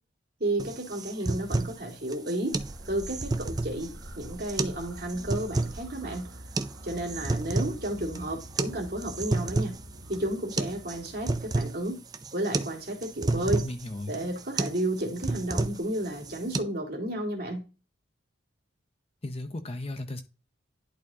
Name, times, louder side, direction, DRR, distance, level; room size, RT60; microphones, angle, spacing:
voice 1, 0.4-2.6 2.9-3.9 4.2-6.3 6.8-9.7 10.1-12.0 12.3-13.6 14.1-17.6, right 1 dB, 45° right, 2.1 m, -32 dB
sound 1, 0.6-16.6, right 2 dB, 20° right, 0.4 m, -32 dB
sound 2, 2.5-11.3, equal, 90° right, 2.2 m, -45 dB
voice 2, 13.3-14.2 19.2-20.2, left 2 dB, 30° left, 0.6 m, -36 dB
11.0 x 4.2 x 2.8 m
head